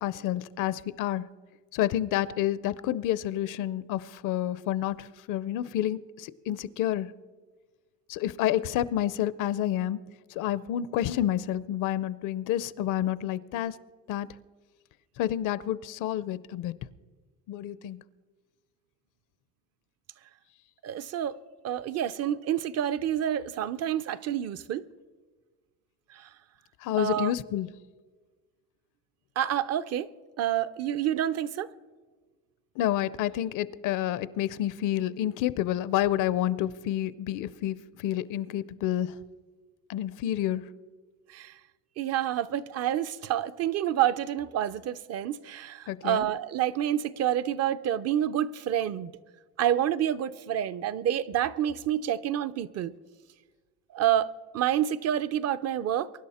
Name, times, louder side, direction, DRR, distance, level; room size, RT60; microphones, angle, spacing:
voice 1, 0.0-1.2 1.7-7.1 8.1-10.0 10.4-13.7 14.1-14.3 15.2-16.7 17.5-18.0 26.8-27.7 32.8-39.1 39.9-40.6 45.9-46.3, left 12 dB, 75° left, 0.7 m, -29 dB
voice 2, 20.8-21.4 21.6-24.8 26.1-26.3 27.0-27.3 29.4-30.1 30.4-31.7 41.3-41.5 42.0-49.1 49.6-52.9 53.9-54.3 54.5-56.1, right 11 dB, 50° right, 0.6 m, -28 dB
23.5 x 11.0 x 4.3 m
cardioid pair, 135°, 31 cm